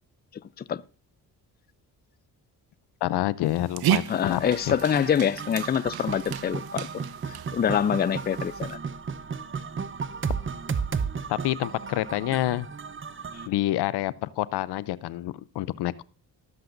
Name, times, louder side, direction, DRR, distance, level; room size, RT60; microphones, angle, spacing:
voice 1, 3.0-4.7 11.3-12.7 13.5-16.0, left 15 dB, 75° left, 0.6 m, -28 dB
Dog, 3.4-8.8, right 12 dB, 65° right, 0.6 m, -33 dB
voice 2, 4.1-6.9 7.3-8.8, left 8 dB, 25° left, 0.4 m, -25 dB
sound 1, 4.2-13.5, right 5 dB, 30° right, 0.8 m, -34 dB
20.0 x 7.7 x 2.6 m
supercardioid pair, 65°, 41 cm